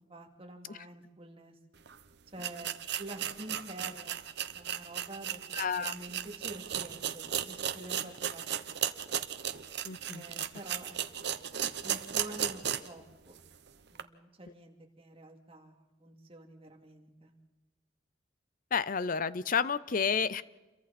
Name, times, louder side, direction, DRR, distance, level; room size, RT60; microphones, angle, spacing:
voice 1, 0.0-1.5 2.3-2.7 3.0-4.2 4.5-5.4 5.8-8.7 10.1-11.0 11.8-13.4 13.9-17.3, right 1 dB, 30° right, 2 dB, 2.5 m, -47 dB
sound 1, 1.9-2.0 2.4-13.0 13.4-13.5 14.0-14.1, right 10 dB, 60° right, 0.9 m, -36 dB
voice 2, 5.5-5.9 9.8-10.2 18.7-20.4, left 6 dB, 45° left, 17 dB, 0.6 m, -30 dB
28.5 x 23.0 x 4.2 m, 1.2 s
head